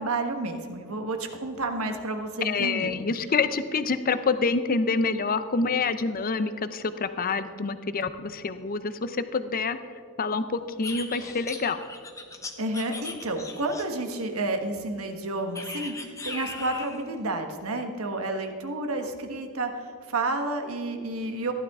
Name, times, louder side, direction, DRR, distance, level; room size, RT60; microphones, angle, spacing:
voice 1, 0.0-2.9 12.6-21.5, right 2 dB, 75° right, 5 dB, 1.3 m, -30 dB
voice 2, 2.4-9.8 10.2-11.8, left 4 dB, 40° left, 12 dB, 0.6 m, -27 dB
sound 1, 10.8-14.1 15.5-17.0, left 3 dB, 15° left, 0.9 m, -38 dB
15.0 x 11.5 x 3.6 m, 2.2 s
head